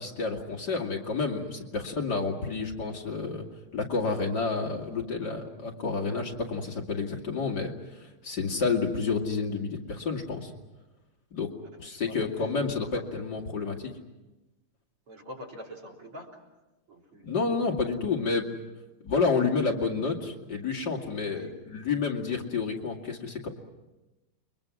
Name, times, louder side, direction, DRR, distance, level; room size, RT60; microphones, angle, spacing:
voice 1, 0.0-3.5 3.7-10.5 11.3-11.5 11.8-13.9 17.2-18.5 19.0-23.5, left 4 dB, 50° left, 1 dB, 2.9 m, -30 dB
voice 2, 11.8-12.2 12.8-13.2 15.1-16.4 16.9-17.3 21.2-21.5, left 1 dB, 85° right, 4 dB, 4.4 m, -45 dB
29.5 x 23.0 x 6.2 m, 1.1 s
omnidirectional pair, 2.4 m